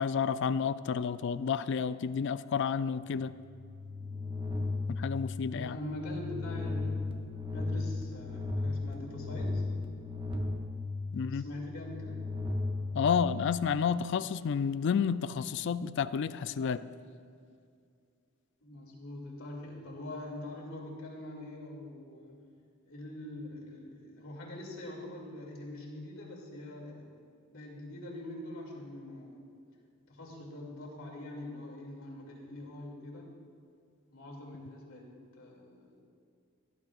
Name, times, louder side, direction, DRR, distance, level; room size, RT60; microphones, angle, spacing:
voice 1, 0.0-3.3 5.0-5.8 11.1-11.5 12.9-16.8, left 6 dB, 60° left, 15 dB, 0.3 m, -30 dB
sound 1, 3.2-13.8, left 3 dB, 25° right, 1.0 m, -36 dB
voice 2, 5.5-7.1 7.5-9.7 11.1-12.2 18.6-22.4 22.8-27.2 27.5-29.5 30.1-33.3 34.1-35.1 35.3-36.1, left 1 dB, 80° left, -2 dB, 2.6 m, -43 dB
18.0 x 11.5 x 2.5 m, 2.3 s
head